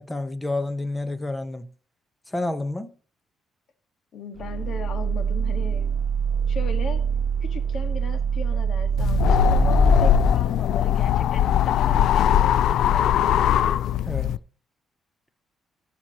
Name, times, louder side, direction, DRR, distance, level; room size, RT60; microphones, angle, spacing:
voice 1, 0.0-1.7 2.3-2.9 14.1-14.3, left 2 dB, 15° left, 1.1 m, -29 dB
voice 2, 4.1-5.9 6.5-7.0 7.4-13.1, left 5 dB, 60° left, 1.7 m, -37 dB
sound 1, 4.4-10.3, right 7 dB, 45° right, 0.3 m, -24 dB
sound 2, 9.0-14.4, left 11 dB, 75° left, 0.3 m, -20 dB
15.5 x 6.0 x 3.0 m
cardioid pair, 90°, 0 cm